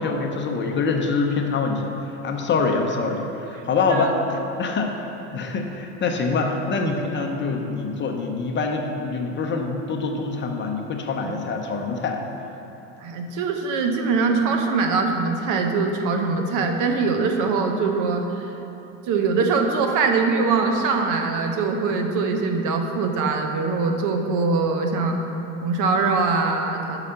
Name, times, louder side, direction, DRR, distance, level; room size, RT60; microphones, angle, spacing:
voice 1, 0.0-5.0 5.3-12.2, left 4 dB, 30° left, 2 dB, 0.8 m, -25 dB
voice 2, 13.0-18.4 19.1-25.2 25.6-27.0, right 4 dB, 50° right, 4 dB, 0.9 m, -22 dB
6.4 x 4.9 x 5.7 m, 3.0 s
supercardioid pair, 110°, 38 cm